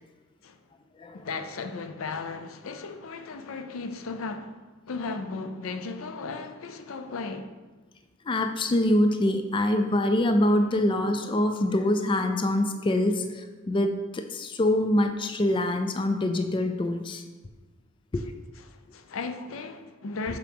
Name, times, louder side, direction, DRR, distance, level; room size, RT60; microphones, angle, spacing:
voice 1, 1.1-4.6 4.9-7.5 18.7-20.4, left 4 dB, 85° left, 0.5 m, -36 dB
voice 2, 8.3-17.2 18.1-18.2, left 1 dB, 25° left, 0.3 m, -25 dB
7.4 x 5.0 x 3.6 m
head